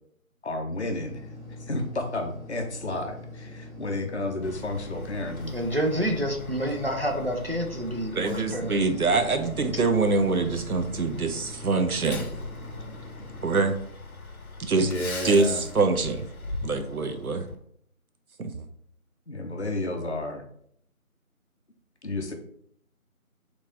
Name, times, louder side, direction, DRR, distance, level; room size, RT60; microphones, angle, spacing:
voice 1, 0.4-1.3 1.7-5.6 14.8-15.7 19.3-20.4 22.0-22.3, left 2 dB, 50° left, 3 dB, 0.5 m, -31 dB
sound 1, 0.9-13.6, left 2 dB, ahead, 0.6 m, -43 dB
Truck, 4.4-17.5, left 2 dB, 85° left, 0.8 m, -41 dB
voice 2, 5.5-8.8, equal, 45° right, 2 dB, 0.5 m, -28 dB
voice 3, 8.1-12.3 13.4-13.8 14.6-14.9 15.2-16.3 16.6-17.5 18.4-18.5, right 3 dB, 80° right, 7 dB, 0.7 m, -24 dB
3.5 x 3.0 x 2.6 m, 0.66 s
figure-of-eight pair, 170°, 43 cm